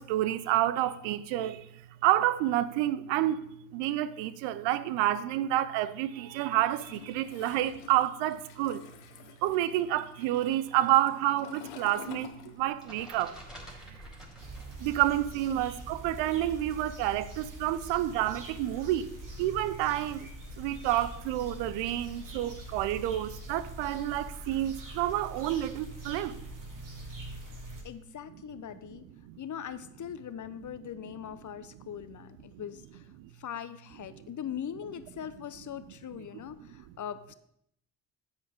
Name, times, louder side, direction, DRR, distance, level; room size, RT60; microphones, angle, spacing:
voice 1, 0.0-8.8 9.4-13.3 13.9-14.1 14.8-19.1 19.4-20.3 20.6-26.4 29.2-29.4 32.5-32.6 33.2-33.3, right 13 dB, 75° right, 0.6 m, -29 dB
Toilet flush, 6.6-13.1 13.3-14.9, left 9 dB, 80° left, 0.9 m, -50 dB
sound 1, 12.4-15.3 15.5-17.4, equal, ahead, 4.1 m, -50 dB
sound 2, 14.4-27.8, right 1 dB, 45° right, 2.7 m, -44 dB
voice 2, 27.8-29.1 29.4-37.3, left 9 dB, 45° left, 0.8 m, -41 dB
10.0 x 8.2 x 3.6 m
hypercardioid pair, 45°, 44 cm